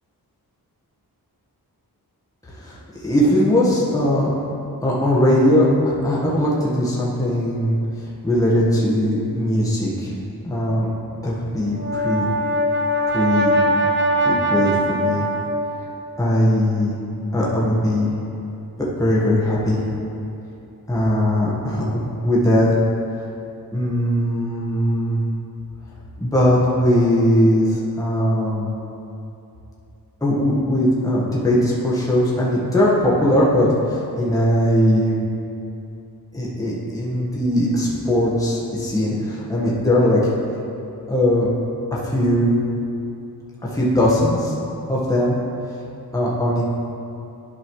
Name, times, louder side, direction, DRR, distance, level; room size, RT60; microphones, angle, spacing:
voice 1, 2.4-2.8 3.0-4.4 4.8-10.1 10.4-10.9 11.2-12.3 13.1-13.6 14.2-15.2 16.2-17.0 17.3-18.1 18.8-19.8 20.9-22.7 23.7-25.2 26.2-28.7 30.2-35.2 36.3-40.2 41.1-41.5 41.9-42.8 43.6-44.6 44.9-45.4 46.1-46.6, equal, 10° left, -6 dB, 1.3 m, -19 dB
Brass instrument, 11.6-15.9, right 1 dB, 30° right, 0.7 m, -21 dB
11.0 x 5.5 x 3.1 m, 2.7 s
wide cardioid pair, 100°, 38 cm